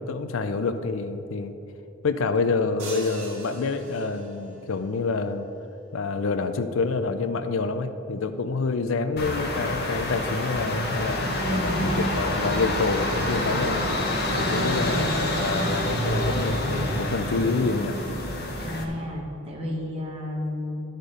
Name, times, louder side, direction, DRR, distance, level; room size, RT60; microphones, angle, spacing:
voice 1, 0.0-1.6 2.0-5.5 5.9-18.0, left 4 dB, 70° left, 9 dB, 0.5 m, -27 dB
sound 1, 2.8-4.6, right 2 dB, 75° right, 1.7 m, -41 dB
sound 2, 9.2-18.8, left 1 dB, 50° left, 1.1 m, -27 dB
voice 2, 11.3-12.0 14.4-15.0 18.6-20.8, left 1 dB, 25° right, -2 dB, 1.4 m, -31 dB
13.0 x 4.4 x 4.9 m, 2.9 s
head